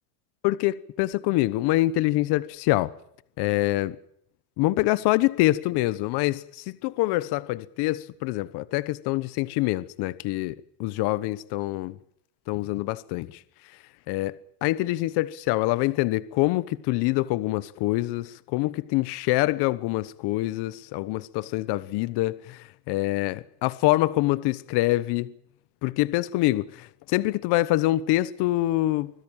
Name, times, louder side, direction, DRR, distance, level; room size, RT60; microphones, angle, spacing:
voice 1, 0.4-2.9 3.4-3.9 4.6-10.5 10.8-12.0 12.5-13.3 14.1-14.3 14.6-25.3 25.8-29.1, left 18 dB, 55° left, 1.1 m, -25 dB
25.0 x 16.0 x 9.0 m
cardioid pair, 140°, 46 cm